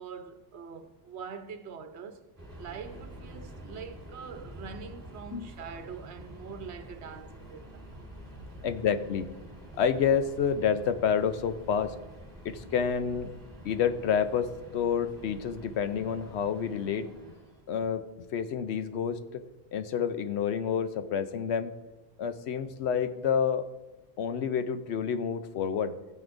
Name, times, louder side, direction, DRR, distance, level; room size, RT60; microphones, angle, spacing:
voice 1, 0.0-2.2 2.6-7.9, right 6 dB, 80° right, 1.0 m, -44 dB
Subway metro underground, 2.4-17.7, equal, 20° right, 1.7 m, -48 dB
voice 2, 8.6-9.3 9.8-11.9 12.4-13.3 13.6-17.1 17.7-18.1 18.3-19.4 19.7-21.7 22.2-23.7 24.2-25.9, left 7 dB, 80° left, 0.9 m, -29 dB
14.0 x 9.4 x 2.6 m
omnidirectional pair, 1.1 m